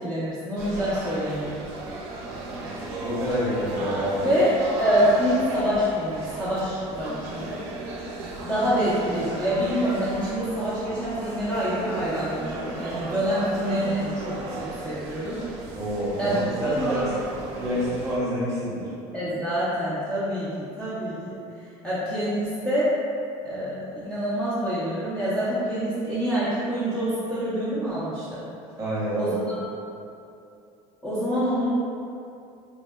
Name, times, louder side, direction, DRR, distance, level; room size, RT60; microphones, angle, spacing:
voice 1, 0.0-1.6 4.2-4.5 4.8-7.6 8.4-15.4 16.2-16.4 16.7-17.1 19.1-20.5 20.8-21.4 21.8-22.9 23.4-28.4 29.1-29.6 31.0-31.7, equal, 5° left, -12 dB, 0.4 m, -26 dB
sound 1, 0.6-18.2, right 2 dB, 85° right, 0.5 m, -35 dB
voice 2, 3.0-4.3 15.8-17.0 17.5-18.9 28.8-29.3, equal, 25° right, -9 dB, 0.8 m, -27 dB
3.5 x 2.0 x 2.2 m, 2.6 s
cardioid pair, 160°, 14 cm